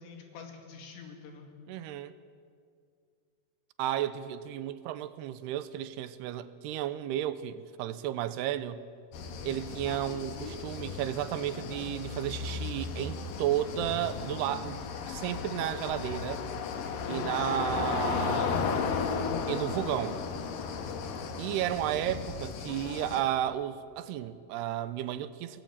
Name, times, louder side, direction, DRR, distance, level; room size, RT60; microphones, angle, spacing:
voice 1, 0.0-1.5 16.9-18.5, left 5 dB, 90° left, 4.7 m, -45 dB
voice 2, 1.7-2.1 3.8-8.8 9.4-14.8 15.1-16.4 17.1-18.7 19.5-20.2 21.4-25.6, right 12 dB, 80° right, 2.7 m, -33 dB
sound 1, 9.1-23.2, left 5 dB, 65° left, 2.8 m, -35 dB
22.5 x 18.0 x 8.6 m
omnidirectional pair, 4.8 m